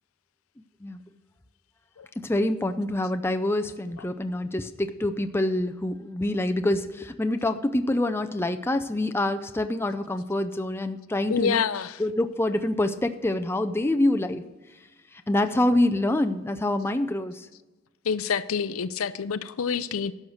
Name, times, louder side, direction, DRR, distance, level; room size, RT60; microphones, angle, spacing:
voice 1, 2.2-11.6 12.0-14.4 15.3-17.5, left 1 dB, 10° left, 0.4 m, -26 dB
voice 2, 11.3-12.0 18.0-20.2, left 6 dB, 80° left, 0.5 m, -27 dB
11.5 x 6.5 x 7.1 m
head